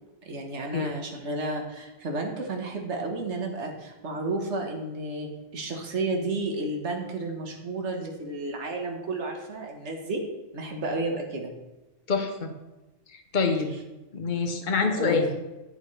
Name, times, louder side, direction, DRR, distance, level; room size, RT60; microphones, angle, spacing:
voice 1, 0.2-5.3 5.5-10.2 10.5-11.5 14.9-15.2, right 2 dB, 70° right, 2 dB, 1.6 m, -32 dB
voice 2, 12.1-12.5 13.1-13.7 14.1-15.4, left 4 dB, 40° left, 4 dB, 1.1 m, -26 dB
11.0 x 8.1 x 3.3 m, 1.1 s
omnidirectional pair, 1.2 m